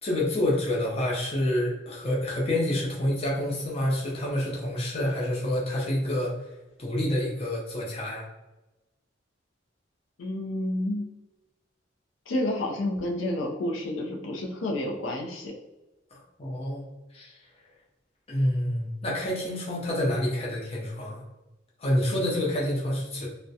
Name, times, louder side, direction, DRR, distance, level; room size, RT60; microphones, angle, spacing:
voice 1, 0.0-6.3 6.8-8.3 16.1-16.8 17.1-17.3 18.3-21.2 21.8-23.3, left 1 dB, 30° left, -4 dB, 0.5 m, -28 dB
voice 2, 10.2-11.1 12.3-15.5, left 1 dB, 80° left, 0 dB, 0.4 m, -30 dB
2.3 x 2.1 x 2.6 m, 1.0 s
head